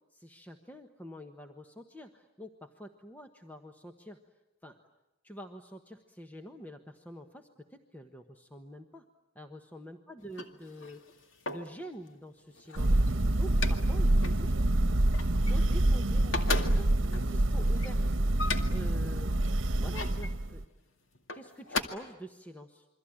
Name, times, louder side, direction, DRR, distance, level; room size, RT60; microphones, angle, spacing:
voice 1, 0.1-4.2 4.6-4.8 5.2-9.0 9.3-14.6 15.5-18.0 18.7-19.3 19.8-20.6 21.3-22.9, equal, 10° left, 4 dB, 1.3 m, -47 dB
sound 1, 10.2-11.8 12.4-13.9 14.2-14.4 14.8-15.9 16.2-18.9 19.6-20.3 21.1-21.8, left 3 dB, 85° left, 2.2 m, -37 dB
Thunder, 12.8-20.6, right 1 dB, 75° right, 1.2 m, -27 dB
28.0 x 24.0 x 8.9 m, 0.98 s
head